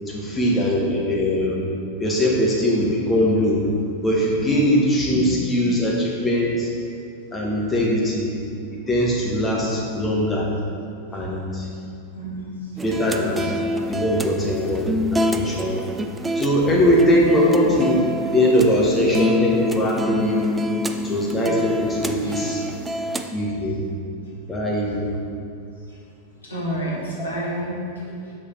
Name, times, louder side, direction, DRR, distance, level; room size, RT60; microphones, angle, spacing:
voice 1, 0.1-1.7 2.0-3.7 4.0-6.7 7.3-8.3 8.7-10.5 11.1-11.7 12.8-13.5 13.9-15.7 16.3-20.5 21.0-22.6 23.3-23.8 24.5-25.1 27.2-27.3, equal, 15° left, -4 dB, 1.1 m, -21 dB
voice 2, 12.1-12.8 13.4-13.5 17.3-17.4 22.2-22.5 25.9-26.0 26.4-28.3, equal, 80° left, -6 dB, 1.5 m, -31 dB
sound 1, 12.8-23.3, equal, 10° right, 0.3 m, -26 dB
6.8 x 4.6 x 4.2 m, 2.5 s
figure-of-eight pair, 90°, 0 cm